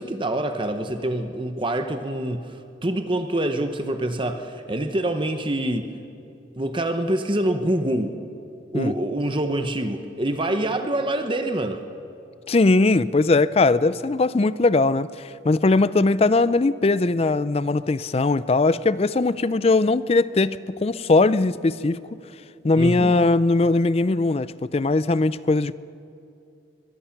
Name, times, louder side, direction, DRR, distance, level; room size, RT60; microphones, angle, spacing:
voice 1, 0.0-5.9 6.6-8.1 8.7-11.8 22.8-23.2, right 1 dB, 25° right, 7 dB, 0.9 m, -26 dB
voice 2, 12.5-22.2 22.6-25.7, left 3 dB, 30° left, 17 dB, 0.4 m, -20 dB
22.5 x 21.5 x 5.9 m, 2.7 s
head